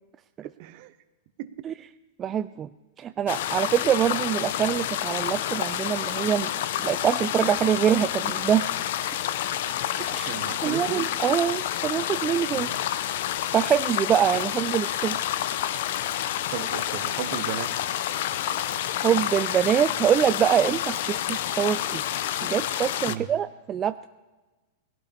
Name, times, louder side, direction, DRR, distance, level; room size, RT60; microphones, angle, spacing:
voice 1, 0.4-0.9 1.4-1.5 10.2-11.1 12.5-12.8 16.5-17.7 23.1-23.3, right 12 dB, 55° right, 12 dB, 0.9 m, -35 dB
voice 2, 2.2-2.7 3.0-6.5 6.8-8.7 10.0-10.3 10.6-12.7 13.5-15.3 19.0-22.0 22.4-24.1, right 9 dB, 30° right, 10 dB, 0.4 m, -24 dB
sound 1, 3.3-23.2, left 11 dB, 65° left, 0.6 m, -29 dB
20.0 x 16.5 x 2.9 m, 1.2 s
hypercardioid pair, 110°, 0 cm